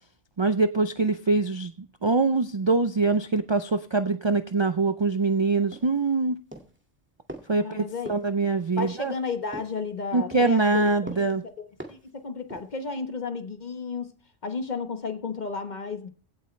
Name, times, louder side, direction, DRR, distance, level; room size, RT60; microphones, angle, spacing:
voice 1, 0.4-6.4 7.5-9.1 10.1-11.4, right 3 dB, 40° right, 10 dB, 0.4 m, -24 dB
sound 1, 5.7-6.1 6.5-6.8 7.3-7.5 8.1-8.3 8.8-9.1 9.5-9.8 10.3-10.6 11.1-11.4 11.8-12.1 12.5-12.8, right 1 dB, 10° right, 2.0 m, -42 dB
voice 2, 7.6-8.1 8.8-11.4 11.9-14.1 14.4-16.1, left 5 dB, 40° left, 7 dB, 1.3 m, -33 dB
16.0 x 8.2 x 3.3 m, 0.40 s
omnidirectional pair, 1.3 m